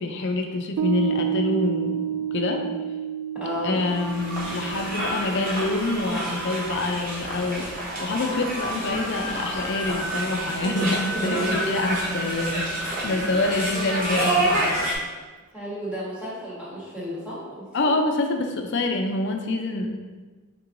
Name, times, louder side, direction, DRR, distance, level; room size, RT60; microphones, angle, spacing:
voice 1, 0.0-2.6 3.6-7.6 8.0-14.8 17.7-19.9, left 2 dB, 55° left, 4 dB, 0.5 m, -26 dB
Piano, 0.8-7.5, right 9 dB, 70° right, 0.3 m, -31 dB
voice 2, 3.3-3.8 10.6-11.8 13.7-13.9 15.5-17.6, right 1 dB, 5° right, -9 dB, 1.3 m, -32 dB
sound 1, 3.8-14.9, right 1 dB, 40° right, 0.9 m, -28 dB
4.5 x 3.6 x 2.6 m, 1.3 s
head